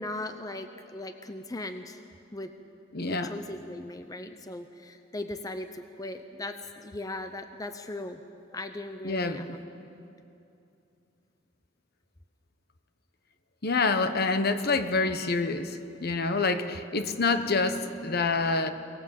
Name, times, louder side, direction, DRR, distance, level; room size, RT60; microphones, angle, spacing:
voice 1, 0.0-2.0 2.3-2.5 3.1-8.2 8.5-9.7, left 2 dB, 20° left, 8 dB, 0.8 m, -38 dB
voice 2, 2.9-3.3 9.0-9.6 13.6-18.7, left 3 dB, 55° left, 9 dB, 1.1 m, -27 dB
24.5 x 19.0 x 7.5 m, 2.7 s
head